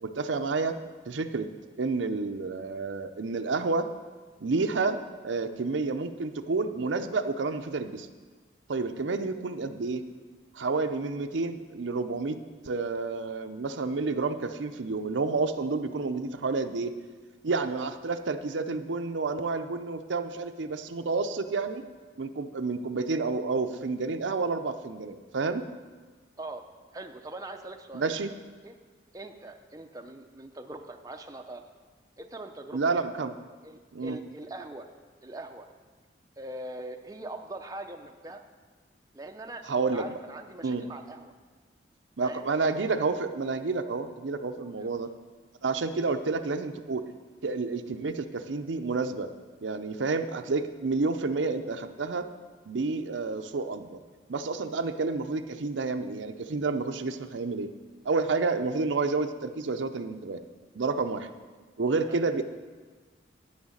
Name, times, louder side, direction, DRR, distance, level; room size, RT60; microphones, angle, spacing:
voice 1, 0.0-0.7 1.1-1.5 1.8-3.9 4.4-5.0 5.2-8.1 8.7-10.0 10.5-12.4 12.7-16.9 17.4-21.9 22.2-25.6 27.9-28.3 32.7-33.3 33.9-34.2 39.7-40.0 40.6-40.8 42.2-45.1 45.6-47.1 47.4-49.3 49.6-52.3 52.7-54.0 54.3-57.7 58.0-60.4 60.7-61.3 61.8-62.4, right 3 dB, 80° right, 8 dB, 0.6 m, -29 dB
voice 2, 26.9-28.1 28.6-28.8 29.1-31.6 32.2-32.8 33.6-34.9 35.2-35.7 36.4-38.4 39.1-41.3 42.2-42.4 44.6-44.9 62.1-62.2, right 2 dB, 20° right, 4 dB, 0.5 m, -42 dB
9.7 x 6.4 x 7.2 m, 1.4 s
head